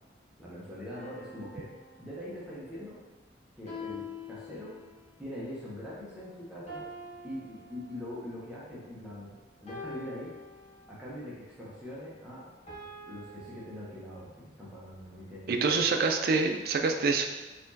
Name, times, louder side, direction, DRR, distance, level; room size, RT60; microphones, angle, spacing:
voice 1, 0.4-1.7 2.0-3.0 3.6-4.7 5.2-6.8 7.2-10.3 10.9-12.5 13.1-14.3 14.6-15.8, left 1 dB, 5° right, -8 dB, 0.8 m, -42 dB
sound 1, 0.9-2.6 3.7-5.2 6.7-8.3 9.7-11.2 12.7-14.4 15.7-16.7, left 2 dB, 35° left, 0.9 m, -46 dB
voice 2, 15.5-17.3, right 4 dB, 50° right, 4 dB, 0.3 m, -26 dB
4.1 x 3.0 x 2.7 m, 1.2 s
head